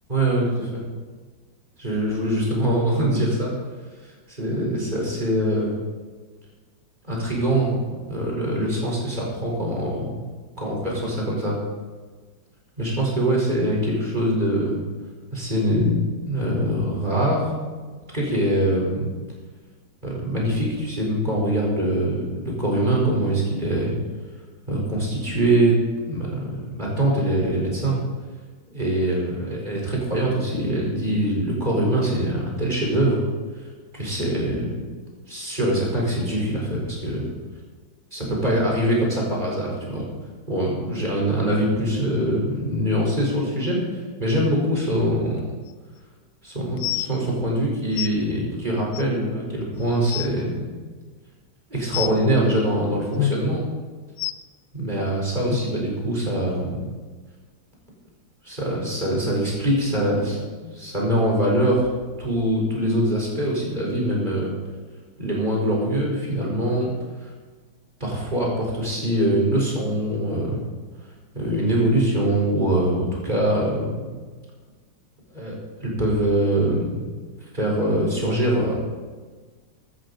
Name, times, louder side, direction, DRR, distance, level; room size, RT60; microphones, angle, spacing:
voice 1, 0.1-0.8 1.8-3.5 4.3-5.8 7.1-7.8 8.1-10.2 10.6-11.6 12.8-14.8 15.3-16.0 16.2-17.7 18.1-19.1 20.0-23.9 24.7-25.8 26.1-28.0 28.7-33.2 33.9-34.7 35.3-37.3 38.1-40.0 40.5-45.4 46.4-50.7 51.7-53.6 54.7-56.8 58.4-61.9 62.2-64.5 65.2-66.9 68.0-70.6 71.3-74.1 75.3-77.1 77.5-78.8, right 1 dB, 25° right, -3 dB, 4.9 m, -23 dB
sound 1, 45.7-45.8 46.8-47.1 48.0-48.1 48.9-49.0 49.6-49.7 49.9-50.3 51.9-52.2 53.2-53.4 54.2-54.3 55.5-55.6 56.4-56.5 57.1-57.2, left 13 dB, 85° left, 1.3 m, -26 dB
16.0 x 13.0 x 4.2 m, 1.4 s
omnidirectional pair, 2.0 m